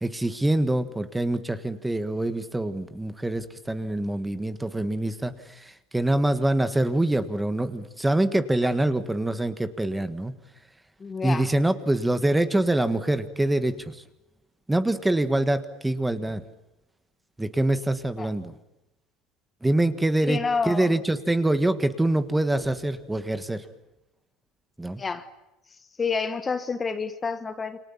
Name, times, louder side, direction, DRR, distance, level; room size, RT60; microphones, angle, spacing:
voice 1, 0.0-10.3 11.2-14.0 14.7-16.4 17.4-18.5 19.6-23.6 24.8-25.0, right 1 dB, 5° right, 11 dB, 1.6 m, -25 dB
voice 2, 11.0-11.5 18.2-18.3 20.2-20.9 25.0-25.3 26.0-27.8, left 5 dB, 15° left, 10 dB, 1.4 m, -29 dB
29.0 x 27.0 x 7.3 m, 0.94 s
cardioid pair, 155°, 0 cm